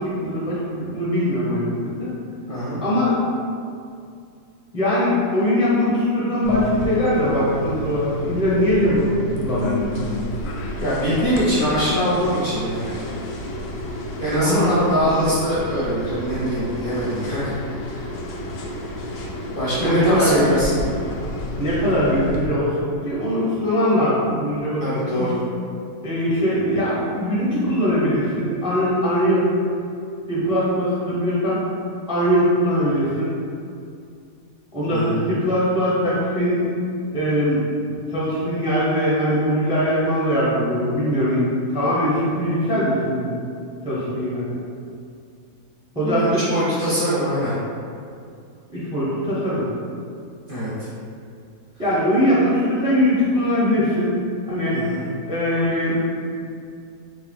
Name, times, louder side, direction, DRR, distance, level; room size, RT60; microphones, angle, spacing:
voice 1, 0.0-2.1 2.8-3.1 4.7-9.1 9.4-10.0 14.4-14.7 19.8-20.7 21.6-24.8 25.2-25.3 26.0-29.5 30.3-31.6 32.1-33.3 34.7-36.7 37.1-41.5 41.7-43.3 43.8-44.5 45.9-46.4 48.7-49.6 51.8-54.2 54.5-54.8 55.3-56.0, equal, 5° right, -9 dB, 0.7 m, -21 dB
voice 2, 2.5-2.8 10.8-13.0 14.2-18.0 19.6-20.8 24.8-25.4 34.9-35.2 46.0-47.6 50.5-50.7 54.7-55.1, equal, 45° left, -10 dB, 0.8 m, -23 dB
sound 1, 6.4-22.5, left 1 dB, 75° left, 0.5 m, -30 dB
3.8 x 2.7 x 3.5 m, 2.4 s
omnidirectional pair, 1.7 m